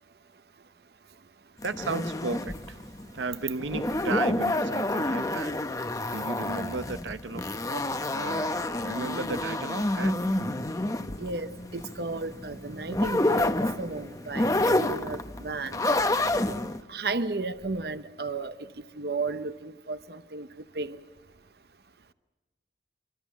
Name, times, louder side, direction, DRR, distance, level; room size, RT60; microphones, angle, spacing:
sound 1, 1.6-16.8, left 1 dB, 20° left, 0.9 m, -29 dB
voice 1, 1.6-2.8 3.1-5.5 6.1-8.5 8.8-10.2, right 3 dB, 90° right, 0.9 m, -34 dB
voice 2, 11.2-15.8 16.9-18.5 19.0-20.5 20.7-21.0, right 3 dB, 60° right, 0.9 m, -33 dB
26.0 x 25.0 x 7.3 m
head